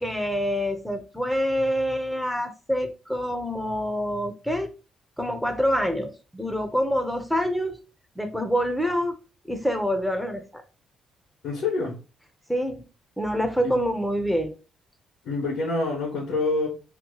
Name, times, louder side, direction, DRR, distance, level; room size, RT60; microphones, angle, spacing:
voice 1, 0.0-4.7 5.2-7.8 8.2-9.2 9.5-10.6 12.5-12.8 13.2-14.5, equal, 5° left, 0.6 m, -26 dB
voice 2, 11.4-11.9 13.6-13.8 15.2-16.7, left 3 dB, 80° left, 1.2 m, -26 dB
3.0 x 2.2 x 3.7 m
cardioid pair, 90°, 0 cm